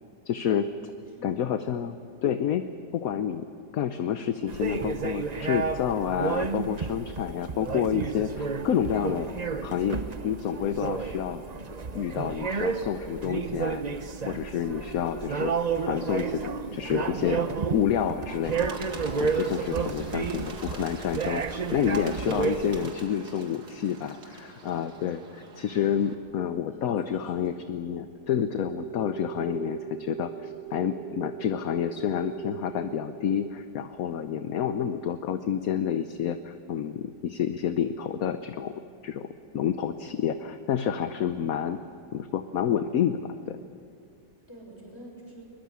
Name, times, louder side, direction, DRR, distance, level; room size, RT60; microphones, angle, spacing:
voice 1, 0.3-0.7 1.2-2.0 2.2-2.7 2.9-3.4 3.7-9.3 9.6-11.4 11.9-13.8 14.2-15.5 15.9-17.4 17.7-18.7 19.2-39.3 39.5-41.8 42.1-43.6, left 9 dB, 60° left, 9 dB, 1.1 m, -29 dB
voice 2, 1.1-1.5 4.1-4.2 20.0-20.3 26.4-27.6 44.5-45.5, right 1 dB, 15° left, -1 dB, 6.6 m, -48 dB
sound 1, 4.5-22.9, right 5 dB, 35° right, 0.6 m, -31 dB
Bird, 18.4-26.1, right 3 dB, 65° right, 2.6 m, -45 dB
sound 2, 28.5-33.5, right 10 dB, 90° right, 1.5 m, -40 dB
22.0 x 22.0 x 8.5 m, 2.3 s
omnidirectional pair, 1.9 m